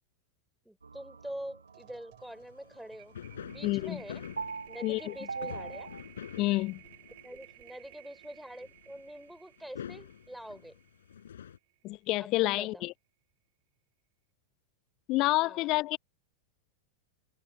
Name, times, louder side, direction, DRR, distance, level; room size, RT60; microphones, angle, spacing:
voice 1, 0.6-3.1 3.5-4.2 4.7-5.9 7.2-10.7 12.2-12.8 15.4-15.7, right 1 dB, ahead, 4.5 m, -45 dB
sound 1, 0.8-6.0, right 4 dB, 75° right, 0.9 m, -43 dB
sound 2, 1.2-1.3 1.6-11.9, right 21 dB, 50° right, 4.9 m, -57 dB
sound 3, 2.4-2.5 2.8-2.9 3.1-7.5 8.2-8.3 8.5-9.1 9.6-11.6, left 9 dB, 65° left, 7.6 m, -46 dB
voice 2, 3.6-4.0 4.8-5.2 6.4-6.8 11.8-12.9 15.1-16.0, left 20 dB, 40° left, 1.2 m, -28 dB
figure-of-eight pair, 90°, 0 cm